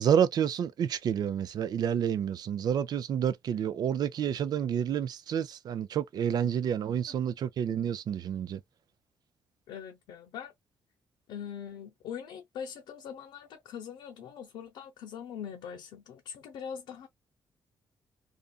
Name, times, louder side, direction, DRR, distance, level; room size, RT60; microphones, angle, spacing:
voice 1, 0.0-8.6, right 8 dB, 60° right, 0.4 m, -29 dB
voice 2, 9.7-10.5 11.3-17.1, left 8 dB, 80° left, 0.6 m, -42 dB
2.5 x 2.4 x 2.2 m
cardioid pair, 75°, 8 cm